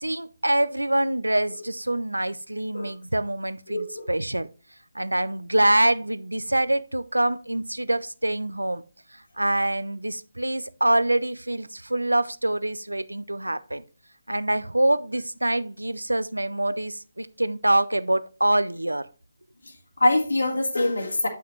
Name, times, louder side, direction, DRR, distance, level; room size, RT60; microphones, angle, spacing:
voice 1, 0.0-4.5 4.9-8.8 9.4-13.8 14.3-19.1, right 1 dB, 85° right, 0.5 m, -25 dB
voice 2, 3.7-4.1 19.6-21.3, left 2 dB, 75° left, 1.5 m, -24 dB
8.3 x 5.7 x 3.1 m
figure-of-eight pair, 145°, 0 cm